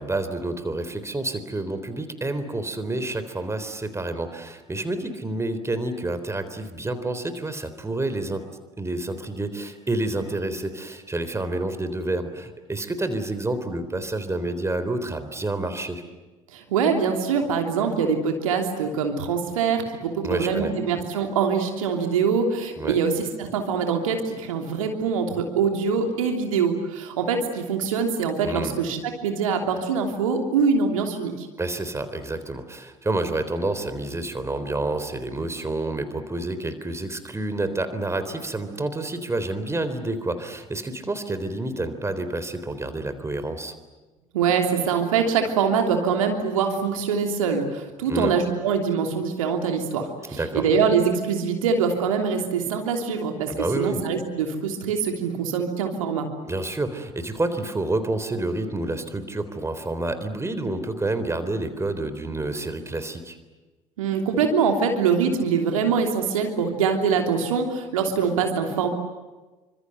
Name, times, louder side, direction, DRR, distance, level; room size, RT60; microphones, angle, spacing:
voice 1, 0.0-8.4 8.8-16.0 20.2-20.7 22.8-23.0 28.4-28.7 31.6-43.7 48.1-48.3 50.3-50.7 53.5-54.0 56.5-63.4, right 2 dB, 15° right, 10 dB, 3.8 m, -29 dB
voice 2, 16.5-31.5 44.3-56.3 64.0-68.9, right 6 dB, 75° right, 4 dB, 3.1 m, -24 dB
28.5 x 25.5 x 8.0 m, 1.2 s
figure-of-eight pair, 55°, 17 cm